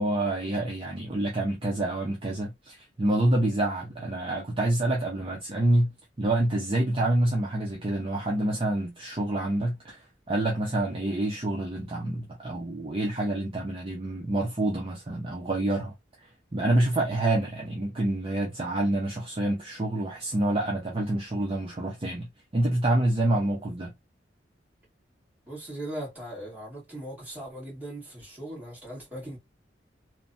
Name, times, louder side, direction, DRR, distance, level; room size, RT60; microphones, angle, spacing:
voice 1, 0.0-10.0 10.3-15.9 16.5-23.9, right 1 dB, 30° right, 0.5 m, -27 dB
voice 2, 25.5-29.4, right 1 dB, 10° right, 1.6 m, -39 dB
3.0 x 2.1 x 2.5 m
head